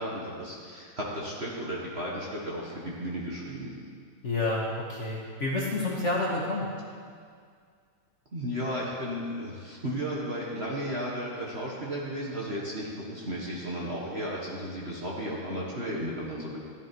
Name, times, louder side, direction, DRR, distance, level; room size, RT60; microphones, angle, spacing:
voice 1, 0.0-3.7 8.3-16.6, equal, 30° right, -5 dB, 1.6 m, -34 dB
voice 2, 4.2-6.7, left 2 dB, 35° left, -4 dB, 1.8 m, -29 dB
14.0 x 11.0 x 4.6 m, 2.1 s
omnidirectional pair, 2.4 m